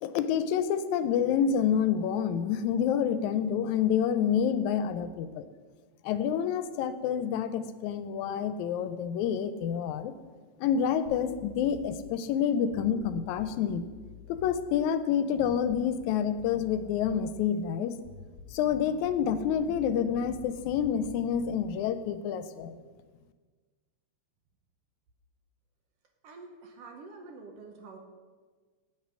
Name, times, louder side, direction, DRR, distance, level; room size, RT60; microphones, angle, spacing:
voice 1, 0.0-5.5 6.0-10.1 10.6-13.9 14.3-18.0 18.5-22.8, left 8 dB, 80° left, 11 dB, 1.9 m, -28 dB
sound 1, 11.0-12.0 12.7-14.6 15.4-16.1 16.4-17.3 18.0-21.7, left 5 dB, 55° left, 1.1 m, -49 dB
voice 2, 26.2-28.0, right 3 dB, 65° right, 3 dB, 1.7 m, -47 dB
8.6 x 7.5 x 6.1 m, 1.4 s
omnidirectional pair, 3.4 m